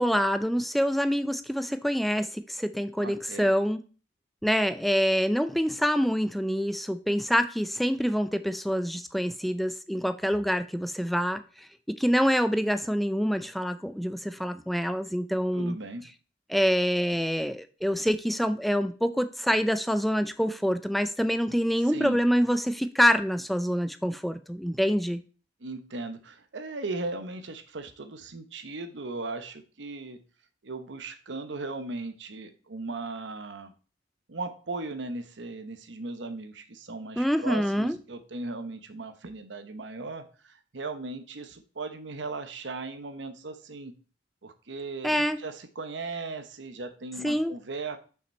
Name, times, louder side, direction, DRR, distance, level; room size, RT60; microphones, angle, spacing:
voice 1, 0.0-3.8 4.4-15.8 16.5-25.2 37.2-38.0 45.0-45.4 47.2-47.5, equal, ahead, 10 dB, 0.4 m, -26 dB
voice 2, 3.0-3.5 15.5-16.1 21.8-22.2 25.6-30.2 30.6-33.7 34.3-43.9 44.4-48.0, right 3 dB, 85° right, 8 dB, 0.9 m, -37 dB
5.8 x 5.8 x 4.3 m, 0.37 s
head